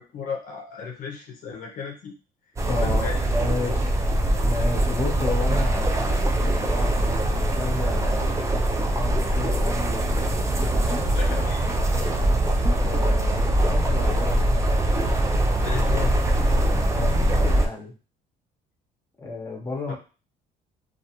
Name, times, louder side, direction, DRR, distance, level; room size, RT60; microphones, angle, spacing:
voice 1, 0.0-2.1 2.6-3.3 11.0-11.6 15.6-16.1 19.9-20.0, left 6 dB, 55° left, 0 dB, 0.6 m, -34 dB
sound 1, 2.6-17.7, right 1 dB, 20° right, 0.3 m, -22 dB
voice 2, 2.7-4.0 4.4-8.4 8.9-11.1 12.8-14.5 16.9-17.9 19.2-20.0, left 2 dB, 15° left, 1 dB, 0.8 m, -33 dB
2.3 x 2.3 x 2.8 m, 0.33 s
cardioid pair, 110°, 17 cm